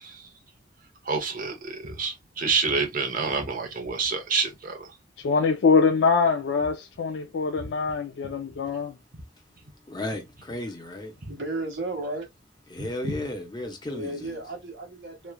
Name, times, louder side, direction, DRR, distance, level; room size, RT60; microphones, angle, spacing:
voice 1, 1.1-4.9 12.8-13.1, right 4 dB, 50° right, 0.8 m, -28 dB
voice 2, 5.2-9.0, left 5 dB, 80° left, 0.4 m, -23 dB
voice 3, 9.9-11.1 12.7-14.4, left 1 dB, 25° left, 0.7 m, -34 dB
voice 4, 11.3-12.3 13.9-15.3, right 2 dB, 80° right, 1.2 m, -34 dB
3.1 x 2.3 x 2.2 m
head